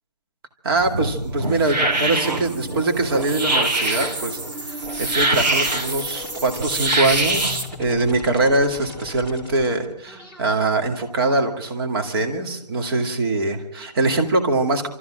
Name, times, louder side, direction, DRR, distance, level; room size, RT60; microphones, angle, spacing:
voice 1, 0.6-4.4 4.7-14.9, right 2 dB, 35° right, 5 dB, 2.3 m, -23 dB
sound 1, 0.8-7.6, right 2 dB, 85° right, 3.4 m, -24 dB
sound 2, 1.3-10.6, left 1 dB, 10° right, 2.2 m, -38 dB
27.5 x 13.5 x 7.6 m, 0.84 s
hypercardioid pair, 165°, 21 cm